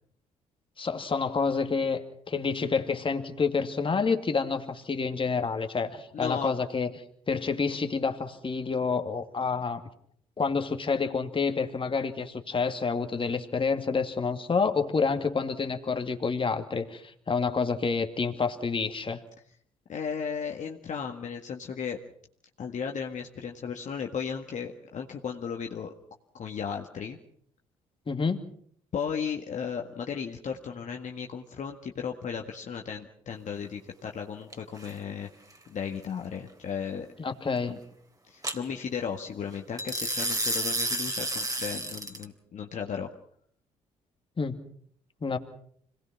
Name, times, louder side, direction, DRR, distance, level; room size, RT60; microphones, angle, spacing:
voice 1, 0.8-6.9 7.3-9.8 10.4-19.2 28.1-28.4 37.2-37.7 44.4-44.6 45.2-45.4, left 5 dB, 35° left, 6 dB, 2.5 m, -28 dB
voice 2, 6.1-6.5 19.9-22.0 22.6-25.9 26.3-27.2 28.9-35.3 35.7-37.1 37.7-37.8 38.3-43.1, left 7 dB, 50° left, 2 dB, 1.8 m, -35 dB
sound 1, 34.5-34.9 38.4-38.6 39.8-42.2, right 1 dB, 25° right, 3.2 m, -30 dB
25.5 x 19.0 x 6.0 m, 0.62 s
hypercardioid pair, 50°, 15 cm